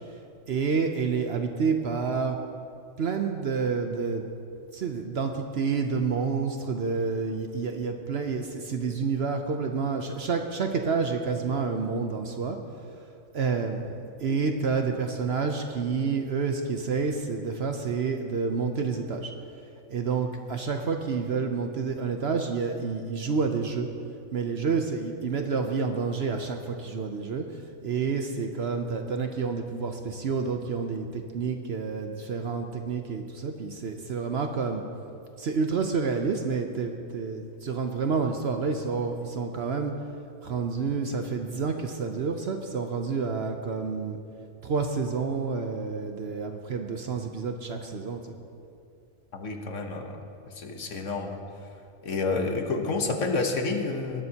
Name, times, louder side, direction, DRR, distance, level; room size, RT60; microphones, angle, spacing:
voice 1, 0.5-2.4 3.0-4.2 4.7-12.6 13.3-19.3 19.9-23.9 24.3-27.5 27.8-34.8 35.4-39.9 40.4-44.2 44.6-48.4, right 5 dB, 55° right, 5 dB, 0.8 m, -29 dB
voice 2, 49.3-50.2 50.6-51.4 52.0-54.2, left 3 dB, 60° left, 4 dB, 1.3 m, -29 dB
19.0 x 12.0 x 2.8 m, 2.6 s
omnidirectional pair, 1.5 m